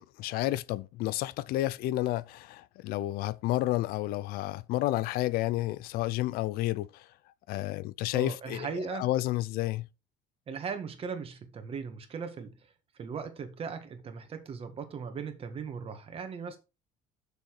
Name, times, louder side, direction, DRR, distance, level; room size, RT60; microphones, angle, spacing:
voice 1, 0.0-7.1 7.5-9.9, left 16 dB, 70° left, 0.5 m, -31 dB
voice 2, 8.1-9.1 10.5-12.7 12.9-16.6, right 5 dB, 35° right, 1.8 m, -38 dB
6.8 x 6.3 x 4.7 m
cardioid pair, 130°, 16 cm